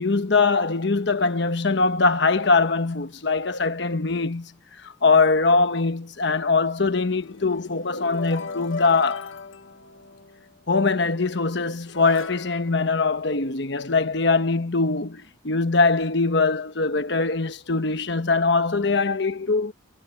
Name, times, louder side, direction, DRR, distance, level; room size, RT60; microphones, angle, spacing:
voice 1, 0.0-4.5 5.0-9.3 10.7-19.7, left 3 dB, 60° left, 1.2 m, -22 dB
sound 1, 6.8-10.5 11.3-11.4 11.9-13.8, left 4 dB, 80° left, 1.4 m, -38 dB
head